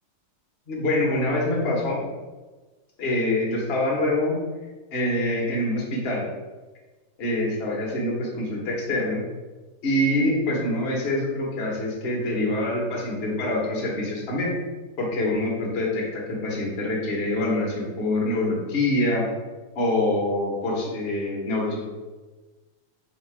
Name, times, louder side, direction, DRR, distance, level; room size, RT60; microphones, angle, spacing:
voice 1, 0.7-2.0 3.0-4.4 4.9-6.2 7.2-9.2 9.8-14.5 15.0-19.3 19.7-21.8, left 1 dB, 55° left, -3 dB, 0.6 m, -25 dB
3.2 x 3.0 x 4.2 m, 1.2 s
omnidirectional pair, 2.4 m